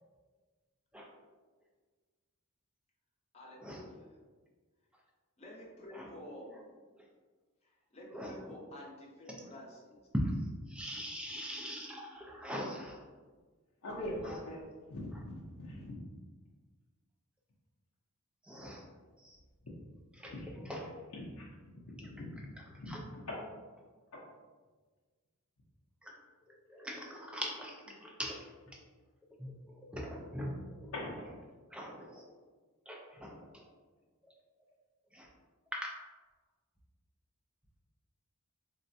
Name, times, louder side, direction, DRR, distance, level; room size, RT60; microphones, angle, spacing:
voice 1, 3.3-4.0 5.4-6.8 7.9-10.0, left 1 dB, 30° left, -4 dB, 0.7 m, -50 dB
voice 2, 8.1-8.6 9.3-9.4 10.1-10.3 10.7-13.0 14.2-14.4 15.1-15.2 18.4-18.9 19.2-19.4 20.1-20.9 22.0-23.0 26.0-26.2 26.5-28.8 29.4-31.4 31.7-32.3 32.9-33.7 35.1-35.3 35.7-36.0, equal, 5° right, -1 dB, 0.4 m, -42 dB
voice 3, 13.8-16.0 19.6-19.7 20.3-20.5 21.1-21.5 21.7-22.4 22.8-23.4 24.1-24.2 30.9-31.3, left 1 dB, 85° left, -5 dB, 0.5 m, -42 dB
3.5 x 2.1 x 2.6 m, 1.4 s
head